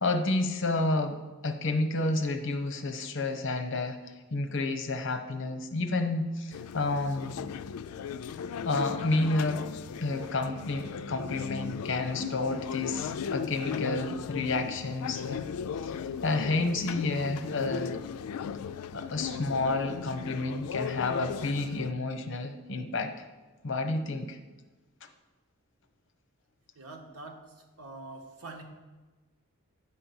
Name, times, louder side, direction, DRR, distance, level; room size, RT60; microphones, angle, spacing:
voice 1, 0.0-7.4 8.6-9.7 10.0-15.4 15.8-18.0 18.9-23.1 23.6-24.4, left 2 dB, 55° left, 6 dB, 0.8 m, -30 dB
sound 1, 6.5-21.9, left 7 dB, 85° left, 0.3 m, -37 dB
voice 2, 26.7-28.6, right 2 dB, 85° right, 3 dB, 1.3 m, -45 dB
9.5 x 4.4 x 7.0 m, 1.2 s
head